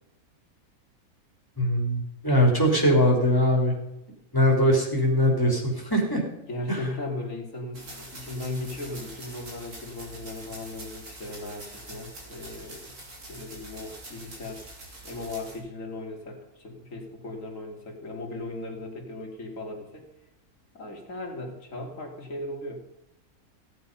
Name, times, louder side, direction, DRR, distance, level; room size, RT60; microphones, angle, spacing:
voice 1, 1.6-3.7 4.3-6.2 6.7-6.9, equal, 15° left, 0 dB, 3.5 m, -21 dB
voice 2, 6.5-12.9 13.3-14.7 15.0-20.1 20.7-22.8, left 2 dB, 60° left, 2 dB, 2.8 m, -37 dB
sound 1, 7.7-15.6, right 2 dB, 85° right, 3.8 m, -44 dB
17.0 x 8.7 x 5.5 m, 0.89 s
omnidirectional pair, 1.6 m